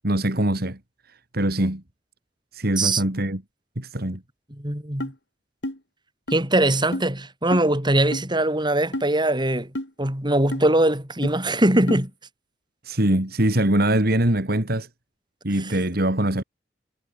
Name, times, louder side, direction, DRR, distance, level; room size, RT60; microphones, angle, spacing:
voice 1, 0.0-0.8 1.3-1.8 2.5-3.4 3.8-4.2 12.8-14.9 15.4-16.4, right 1 dB, 60° right, 2.9 m, -22 dB
voice 2, 4.6-5.1 6.3-9.7 10.0-12.1, right 1 dB, 25° right, 5.5 m, -21 dB
sound 1, 5.0-5.1 5.6-5.8 6.3-6.4 6.9-7.1 7.5-7.7 8.1-8.3 8.9-9.1 9.7-9.9 10.5-10.7 11.2-11.3 11.9-12.0, left 1 dB, 70° left, 5.9 m, -29 dB
head